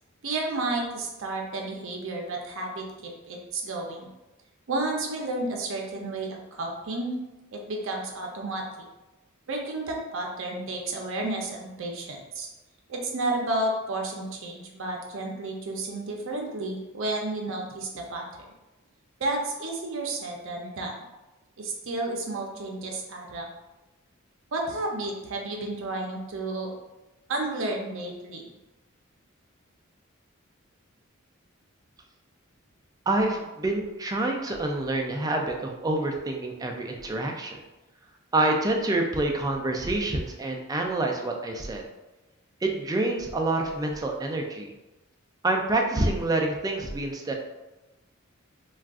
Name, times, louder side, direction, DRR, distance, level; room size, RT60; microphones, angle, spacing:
voice 1, 0.2-4.1 4.7-7.2 7.5-8.6 9.5-12.5 12.9-18.5 19.2-20.9 21.6-23.5 24.5-26.7 27.3-28.5, right 2 dB, 65° right, 1 dB, 0.6 m, -31 dB
voice 2, 33.1-37.6 38.3-41.9 42.6-44.7 45.4-47.3, right 2 dB, 20° right, 2 dB, 0.3 m, -27 dB
2.4 x 2.3 x 3.5 m, 1.1 s
head